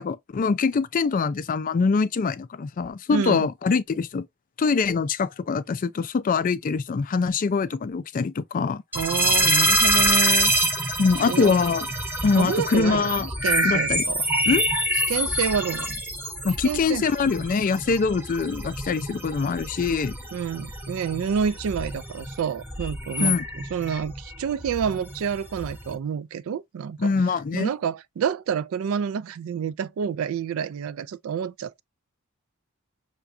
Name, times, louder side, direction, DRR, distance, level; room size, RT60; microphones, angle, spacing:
voice 1, 0.0-4.3 4.6-8.8 11.0-11.9 12.2-13.3 13.6-14.0 14.5-14.7 16.4-20.2 23.2-23.4 27.0-27.7, left 4 dB, 40° left, 0.3 m, -24 dB
voice 2, 3.1-3.5 8.9-10.5 10.8-11.0 11.3-11.5 12.4-13.1 13.4-14.3 15.1-16.0 16.6-17.0 20.3-27.1 27.5-31.8, right 7 dB, 70° right, 0.3 m, -28 dB
sound 1, 8.9-26.0, right 1 dB, 10° right, 0.7 m, -26 dB
5.8 x 2.2 x 2.5 m
head